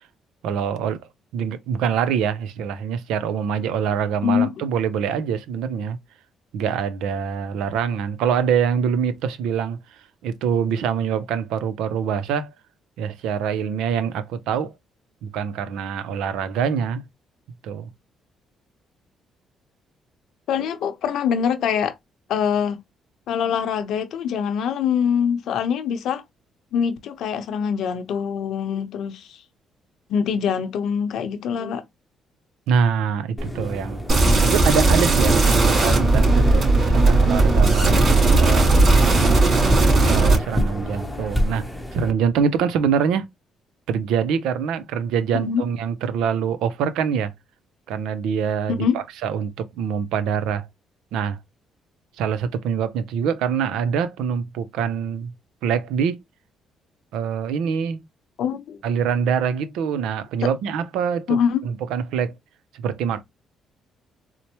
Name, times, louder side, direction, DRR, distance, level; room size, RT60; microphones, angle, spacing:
voice 1, 0.4-1.0 1.3-6.0 6.5-9.8 10.2-12.5 13.0-14.7 15.2-17.0 17.6-17.9 32.7-34.0 34.4-39.4 40.1-43.3 43.9-47.3 47.9-50.7 51.1-51.4 52.2-55.3 55.6-56.2 57.1-58.0 58.8-62.3 62.7-63.2, right 7 dB, 90° right, 0.5 m, -24 dB
voice 2, 4.2-4.5 20.5-21.9 22.3-22.8 23.3-26.2 26.7-29.4 30.1-31.8 45.3-45.6 48.7-49.0 58.4-58.8 61.3-61.6, left 7 dB, 75° left, 0.7 m, -24 dB
sound 1, 33.4-42.1, equal, 5° left, 0.8 m, -27 dB
sound 2, 34.1-40.3, right 3 dB, 50° right, 2.7 m, -17 dB
4.3 x 2.0 x 2.9 m
cardioid pair, 95°, 0 cm